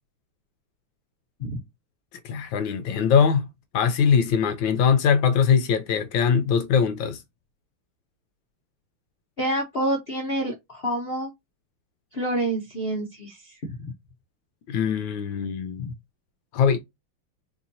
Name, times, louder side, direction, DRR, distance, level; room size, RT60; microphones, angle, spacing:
voice 1, 2.2-3.5 3.7-7.2 14.7-15.9 16.5-16.8, left 7 dB, 75° left, 1.2 m, -21 dB
voice 2, 9.4-11.3 12.1-13.9 15.8-15.9, right 1 dB, 55° left, 0.6 m, -28 dB
4.3 x 2.7 x 2.6 m
omnidirectional pair, 2.3 m